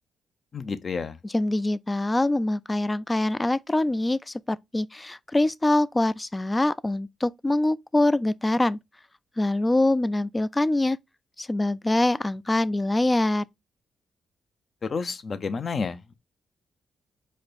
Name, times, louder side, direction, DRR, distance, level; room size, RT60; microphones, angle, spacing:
voice 1, 0.5-1.2 14.8-16.1, left 5 dB, 50° left, 0.7 m, -30 dB
voice 2, 1.3-8.8 9.4-11.0 11.4-13.4, left 2 dB, 20° left, 0.3 m, -24 dB
4.9 x 2.3 x 4.1 m
supercardioid pair, 65°, 0 cm